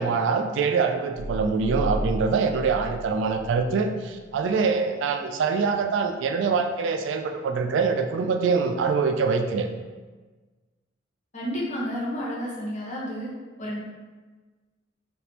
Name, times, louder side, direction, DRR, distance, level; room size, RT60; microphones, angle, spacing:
voice 1, 0.0-9.7, right 5 dB, 65° right, 5 dB, 0.3 m, -24 dB
sound 1, 1.1-3.8, equal, 55° left, 0.5 m, -33 dB
voice 2, 11.3-13.3 13.6-13.8, equal, 40° left, -7 dB, 1.1 m, -31 dB
3.5 x 2.8 x 2.8 m, 1.3 s
head